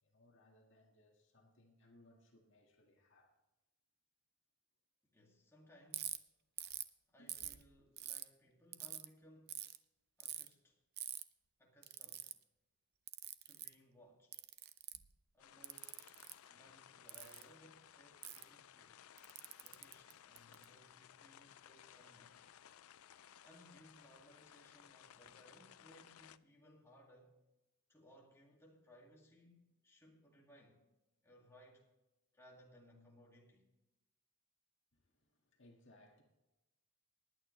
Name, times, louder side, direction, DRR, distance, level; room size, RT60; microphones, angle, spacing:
voice 1, 0.0-3.3 7.2-7.5 34.9-36.2, left 1 dB, 55° left, 2.0 m, -67 dB
voice 2, 5.1-6.2 7.1-9.6 10.2-10.8 11.6-12.3 13.4-14.4 15.3-19.0 19.6-22.4 23.4-27.4 27.9-30.8 31.2-31.9 32.3-33.7, equal, 10° left, 2.3 m, -64 dB
Ratchet pawl, 5.9-6.2 6.6-6.9 7.3-8.2 8.7-9.1 9.5-9.8 10.2-10.5 11.0-11.2 11.8-12.3 13.1-13.7 14.3-15.1 15.6-16.3 17.1-17.4 18.2-18.4 19.2-20.6, right 13 dB, 45° right, 0.6 m, -45 dB
sound 1, 15.4-26.4, left 10 dB, 70° left, 0.4 m, -60 dB
20.0 x 9.2 x 3.3 m
head